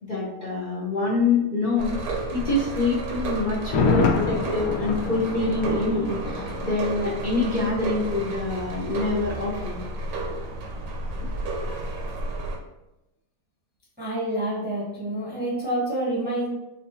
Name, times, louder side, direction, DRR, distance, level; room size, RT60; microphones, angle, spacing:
voice 1, 0.0-9.8, left 3 dB, 40° left, -7 dB, 0.7 m, -26 dB
sound 1, 1.8-12.6, right 2 dB, 85° right, 1.4 m, -32 dB
Thunder, 3.6-7.5 7.8-7.9, left 5 dB, 75° left, 1.4 m, -27 dB
voice 2, 14.0-16.5, right 1 dB, 10° right, -6 dB, 0.7 m, -27 dB
5.4 x 2.9 x 2.7 m, 0.94 s
omnidirectional pair, 1.8 m